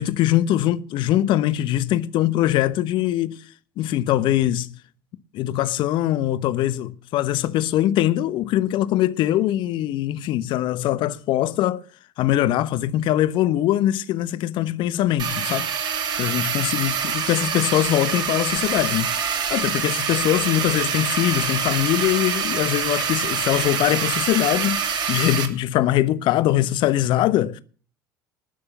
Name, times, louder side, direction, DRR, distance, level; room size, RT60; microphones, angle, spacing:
voice 1, 0.0-3.4 3.8-4.7 5.3-11.8 12.2-19.1 19.5-27.6, left 13 dB, 50° left, 1.0 m, -22 dB
sound 1, 15.2-25.5, right 7 dB, 45° right, 2.8 m, -25 dB
19.5 x 6.7 x 7.1 m
figure-of-eight pair, 65°, 11 cm